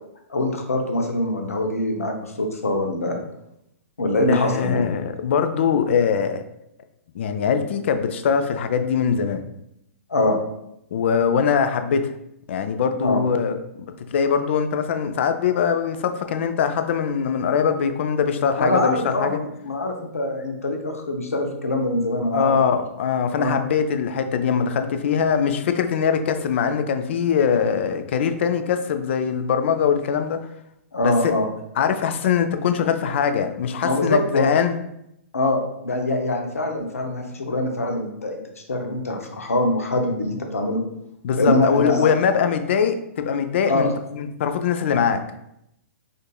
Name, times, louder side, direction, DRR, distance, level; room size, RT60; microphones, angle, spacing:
voice 1, 0.3-3.2 4.0-4.9 10.1-10.4 13.0-13.2 18.6-22.6 23.3-23.6 30.9-31.5 33.8-34.5 35.3-40.8 41.3-42.1 43.7-43.9, left 1 dB, 85° left, 3 dB, 0.7 m, -23 dB
voice 2, 4.3-6.4 7.2-9.4 10.9-12.1 12.5-13.6 14.1-19.4 22.3-30.4 31.0-31.3 31.8-34.8 41.2-45.2, left 7 dB, 55° left, 8 dB, 0.4 m, -22 dB
5.1 x 2.5 x 2.2 m, 0.80 s
hypercardioid pair, 120°, 8 cm